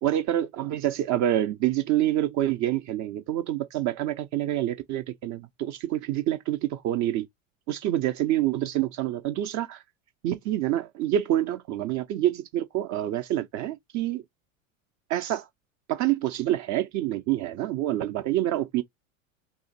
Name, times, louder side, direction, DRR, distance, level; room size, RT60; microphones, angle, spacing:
voice 1, 0.0-7.3 7.7-9.8 10.2-14.2 15.1-15.5 15.9-18.8, right 13 dB, 45° right, 0.7 m, -27 dB
2.9 x 2.8 x 3.9 m
hypercardioid pair, 100°, 40 cm